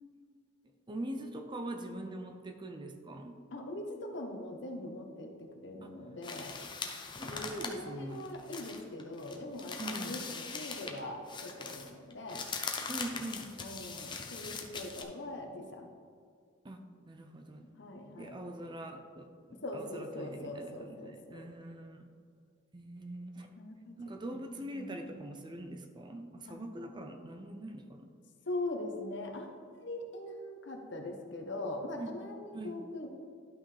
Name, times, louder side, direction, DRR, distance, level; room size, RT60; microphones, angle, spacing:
voice 1, 0.9-3.4 5.8-5.9 7.1-8.3 9.8-10.2 12.9-13.5 16.6-17.7 18.2-22.1 22.7-23.5 24.0-28.1 32.0-32.2 32.5-32.8, right 1 dB, 25° right, 6 dB, 0.5 m, -43 dB
voice 2, 3.5-5.3 5.6-6.5 7.2-12.4 13.6-15.9 17.8-18.4 19.6-21.4 23.4-23.9 24.2-24.3 24.7-25.1 26.5-26.6 28.5-29.5 29.8-33.1, left 1 dB, 60° left, 3 dB, 1.0 m, -41 dB
sound 1, 6.2-11.0 11.3-15.0, left 5 dB, 25° left, 0.6 m, -41 dB
11.5 x 5.7 x 3.3 m, 2.2 s
head